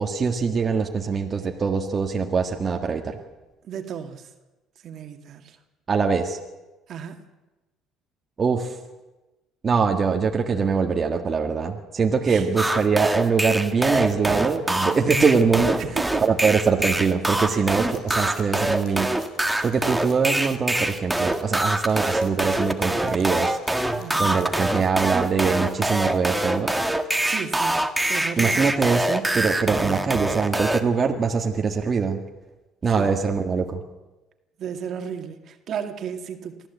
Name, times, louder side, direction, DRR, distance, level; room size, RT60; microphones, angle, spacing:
voice 1, 0.0-3.2 5.9-6.4 8.4-8.8 9.6-15.8 16.2-19.1 19.6-23.6 24.2-26.7 28.4-32.2 32.8-33.8, right 5 dB, 35° right, 2 dB, 1.7 m, -23 dB
voice 2, 3.6-4.3 4.8-5.6 6.9-7.2 12.3-12.5 15.8-16.2 17.5-17.7 24.0-24.5 27.2-28.6 33.0-33.1 34.6-36.7, right 7 dB, 55° right, 6 dB, 2.1 m, -34 dB
sound 1, 12.6-30.8, right 1 dB, 5° right, 1.7 m, -24 dB
sound 2, 17.5-25.4, left 6 dB, 75° left, 7.9 m, -50 dB
23.5 x 14.5 x 8.3 m, 1.1 s
supercardioid pair, 90°, 0 cm